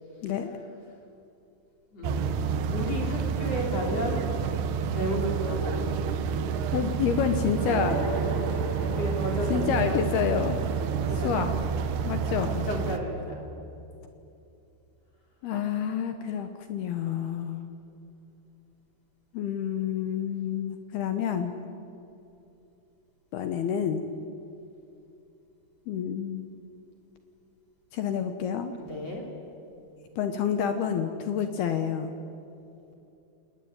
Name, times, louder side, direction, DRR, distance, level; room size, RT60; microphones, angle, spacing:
voice 1, 0.2-0.5 6.7-8.1 9.5-10.6 11.2-11.6 12.0-12.7 15.4-17.6 19.3-21.5 23.3-24.0 25.9-26.4 27.9-28.7 30.2-32.1, left 8 dB, 75° left, 7 dB, 2.4 m, -28 dB
voice 2, 1.9-2.2 2.6-4.3 4.9-5.9 8.8-10.3 11.1-11.5 12.7-13.5 28.8-29.2 32.9-33.0, equal, 35° left, 0 dB, 3.6 m, -33 dB
sound 1, 2.0-13.0, right 6 dB, 70° right, 2.6 m, -29 dB
sound 2, 7.6-12.4, right 3 dB, 55° right, 6.2 m, -36 dB
28.0 x 19.5 x 9.6 m, 2.8 s
omnidirectional pair, 5.9 m